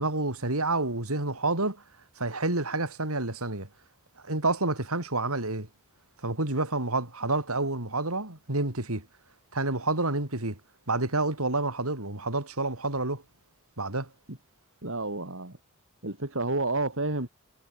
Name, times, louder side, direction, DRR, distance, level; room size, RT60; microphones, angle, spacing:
voice 1, 0.0-1.8 2.2-3.7 4.2-5.7 6.2-9.1 9.5-10.6 10.9-13.2 13.8-14.1, right 2 dB, 90° right, 4.7 m, -29 dB
voice 2, 14.8-15.6 16.0-17.3, right 2 dB, 65° right, 3.6 m, -30 dB
head